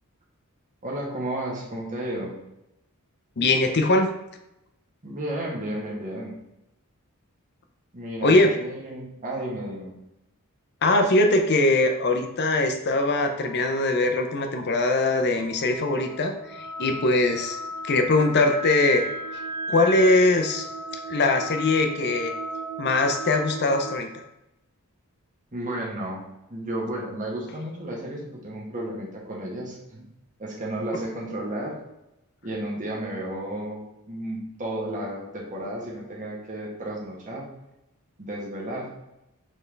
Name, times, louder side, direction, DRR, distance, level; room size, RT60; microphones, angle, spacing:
voice 1, 0.8-2.3 5.0-6.3 7.9-9.9 25.5-26.2 26.5-30.0 30.4-31.7 32.4-37.5 38.2-38.9, right 1 dB, 35° right, -3 dB, 1.2 m, -33 dB
voice 2, 3.4-4.1 8.2-8.5 10.8-17.6 17.8-19.1 19.7-20.7 21.1-22.3 22.8-24.1, left 2 dB, 50° left, 5 dB, 0.6 m, -21 dB
sound 1, 13.1-24.0, right 1 dB, 15° right, 1.6 m, -36 dB
4.4 x 3.6 x 3.2 m, 0.90 s
head